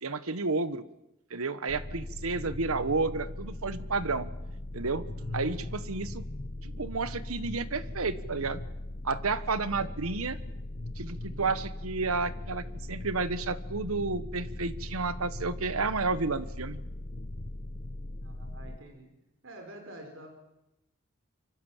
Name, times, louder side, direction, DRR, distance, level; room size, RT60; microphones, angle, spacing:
voice 1, 0.0-0.8 1.3-4.3 4.7-5.1 5.3-6.2 6.6-8.6 9.0-10.4 11.0-16.8, right 3 dB, 80° right, 14 dB, 1.2 m, -31 dB
sound 1, 1.7-18.8, left 1 dB, 40° left, 0.9 m, -39 dB
voice 2, 5.1-5.5 9.8-9.9 11.2-11.5 18.2-19.1 19.4-20.4, right 1 dB, 60° right, 4 dB, 4.8 m, -48 dB
25.5 x 24.5 x 7.4 m, 0.91 s
head